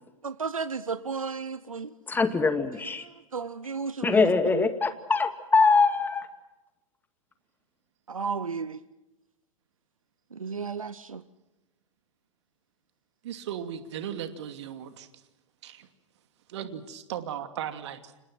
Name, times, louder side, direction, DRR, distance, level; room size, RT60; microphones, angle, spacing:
voice 1, 0.2-1.9 3.0-4.7 8.1-8.8 10.3-11.2, right 5 dB, 85° right, 17 dB, 0.9 m, -34 dB
voice 2, 2.1-3.0 4.0-6.3, left 4 dB, 10° left, 9 dB, 2.2 m, -23 dB
voice 3, 13.2-15.1 15.6-15.9 16.5-18.1, right 9 dB, 55° right, 8 dB, 2.6 m, -37 dB
30.0 x 26.5 x 6.1 m, 1.0 s
figure-of-eight pair, 100°, 17 cm